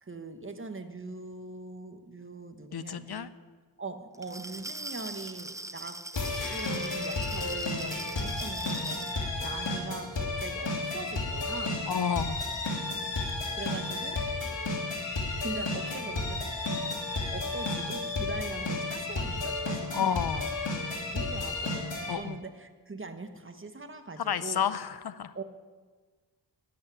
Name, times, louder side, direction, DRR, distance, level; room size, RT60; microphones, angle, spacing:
voice 1, 0.0-3.3 3.8-6.0 6.5-11.8 13.6-14.4 15.4-16.4 17.3-20.5 20.9-24.6 25.3-25.4, right 3 dB, 30° right, 7 dB, 1.3 m, -41 dB
voice 2, 2.7-3.3 11.9-12.4 19.9-20.5 22.1-22.4 24.2-25.3, left 8 dB, 60° left, 15 dB, 0.6 m, -30 dB
Glass, 4.1-9.2, right 2 dB, 10° right, 0.4 m, -42 dB
sound 1, 6.1-22.1, left 2 dB, 85° left, 2.9 m, -32 dB
12.5 x 8.5 x 9.9 m, 1.4 s
wide cardioid pair, 95°, 43 cm